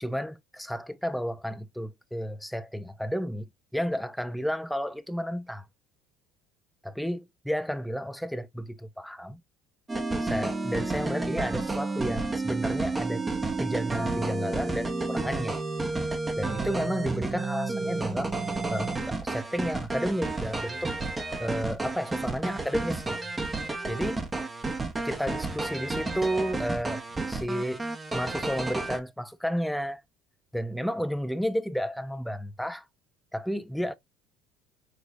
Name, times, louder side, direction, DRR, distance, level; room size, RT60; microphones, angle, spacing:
voice 1, 0.0-5.7 6.8-9.4 10.2-13.2 13.6-15.6 16.4-18.4 18.7-20.9 21.4-23.3 23.9-24.2 25.0-30.0 30.5-32.9 33.3-33.9, equal, ahead, 0.7 m, -32 dB
sound 1, 9.9-29.0, right 3 dB, 15° right, 1.1 m, -31 dB
6.4 x 3.0 x 2.7 m
supercardioid pair, 95°, 0 cm